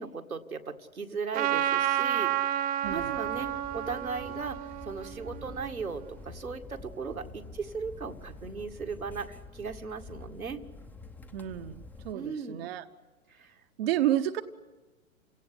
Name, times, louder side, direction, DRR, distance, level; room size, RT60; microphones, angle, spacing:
voice 1, 0.0-2.3 2.9-10.6 12.1-12.6 13.3-13.5, right 5 dB, 80° right, 4 dB, 2.0 m, -37 dB
Trumpet, 1.3-6.0, right 11 dB, 20° right, 1.0 m, -31 dB
sound 1, 2.8-12.1, left 3 dB, 5° left, 0.8 m, -47 dB
voice 2, 2.8-3.2 11.3-12.9 13.8-14.4, right 12 dB, 45° right, 9 dB, 1.0 m, -30 dB
29.0 x 17.5 x 10.0 m, 1.3 s
figure-of-eight pair, 110°, 42 cm